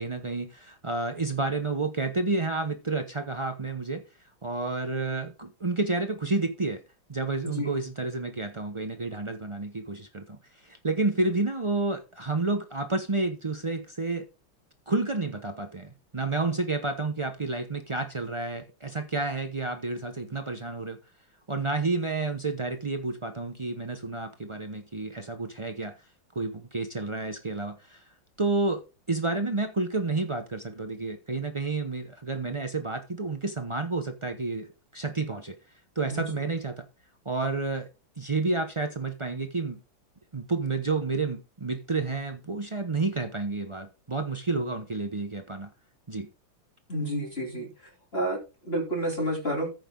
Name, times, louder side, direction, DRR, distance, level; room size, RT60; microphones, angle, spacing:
voice 1, 0.0-4.0 4.4-6.8 7.1-14.3 14.9-21.0 21.5-25.9 26.3-28.0 28.4-28.8 29.1-34.7 34.9-35.6 35.9-36.8 37.2-37.9 38.2-39.8 40.3-45.7 46.1-46.3, right 3 dB, 45° right, 0.3 m, -30 dB
voice 2, 46.9-47.7 48.1-49.7, right 1 dB, 30° left, 3.4 m, -29 dB
14.5 x 5.9 x 3.8 m
omnidirectional pair, 2.2 m